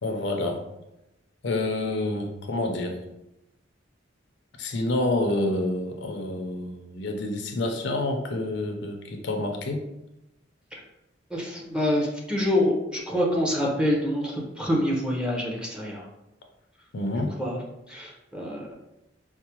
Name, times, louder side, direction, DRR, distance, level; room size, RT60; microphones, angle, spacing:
voice 1, 0.0-0.6 1.4-3.0 4.6-9.8 16.9-17.4, left 2 dB, 65° left, 3 dB, 0.5 m, -28 dB
voice 2, 11.3-16.0 17.4-17.6 17.9-18.7, left 1 dB, 5° right, -3 dB, 0.7 m, -26 dB
4.6 x 2.0 x 2.9 m, 0.90 s
head